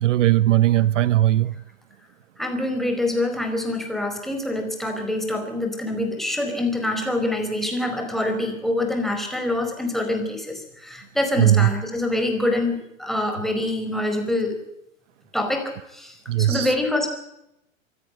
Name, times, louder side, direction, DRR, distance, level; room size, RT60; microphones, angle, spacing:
voice 1, 0.0-1.6 11.4-11.7 16.3-16.8, right 13 dB, 65° right, 0.9 m, -18 dB
voice 2, 2.4-14.6 15.3-17.1, left 1 dB, ahead, 4.8 m, -25 dB
25.5 x 13.5 x 7.8 m
hypercardioid pair, 120°, 41 cm